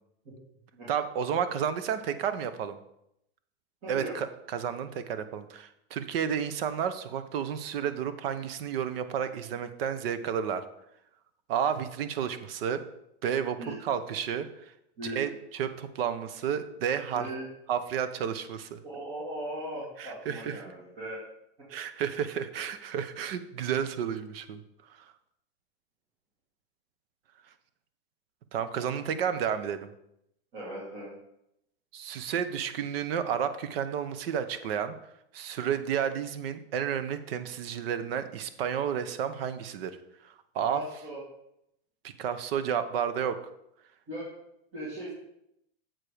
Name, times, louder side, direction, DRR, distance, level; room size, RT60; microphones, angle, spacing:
voice 1, 0.9-2.8 3.9-10.6 11.5-12.8 13.2-14.7 15.0-17.3 17.7-18.8 20.0-20.6 21.7-24.6 24.9-25.0 28.5-29.9 31.9-35.0 35.3-39.9 40.2-40.8 42.0-43.4, right 8 dB, 65° right, 11 dB, 0.8 m, -31 dB
voice 2, 3.8-4.2 13.6-13.8 15.0-15.2 17.1-17.4 18.8-21.2 30.5-31.1 40.7-41.2 44.1-44.3 44.7-45.1, right 1 dB, 40° right, -8 dB, 2.5 m, -38 dB
7.6 x 4.8 x 4.9 m, 0.79 s
supercardioid pair, 165°, 31 cm